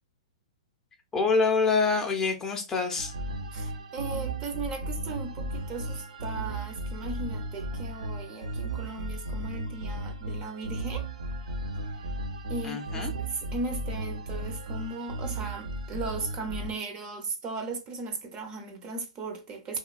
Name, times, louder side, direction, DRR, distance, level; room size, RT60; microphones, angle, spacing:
voice 1, 1.1-3.1 12.6-13.1, left 4 dB, 15° left, 0.5 m, -26 dB
sound 1, 3.0-16.7, right 1 dB, 80° right, 0.6 m, -35 dB
voice 2, 3.5-11.1 12.5-19.8, right 3 dB, 25° right, 0.6 m, -37 dB
2.9 x 2.2 x 2.3 m
hypercardioid pair, 140°, 4 cm